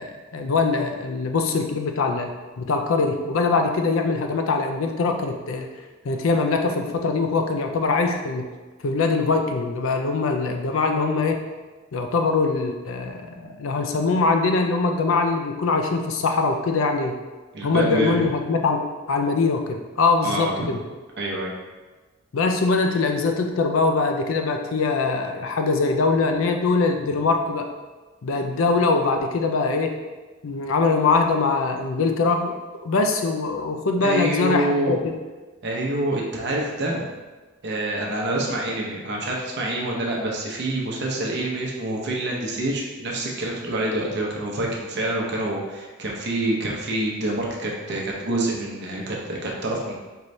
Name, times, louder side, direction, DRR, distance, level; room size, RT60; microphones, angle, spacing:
voice 1, 0.0-2.3 2.6-5.7 6.0-8.5 8.8-11.4 11.9-17.2 17.6-18.8 19.1-20.8 22.3-27.7 28.2-29.9 30.4-32.5 32.8-35.1, left 3 dB, 70° left, 4 dB, 0.5 m, -22 dB
voice 2, 17.5-18.1 20.2-20.7 21.2-21.5 34.0-34.9 35.6-37.1 37.6-49.9, right 1 dB, 55° right, -2 dB, 0.7 m, -26 dB
4.5 x 3.2 x 2.6 m, 1.3 s
head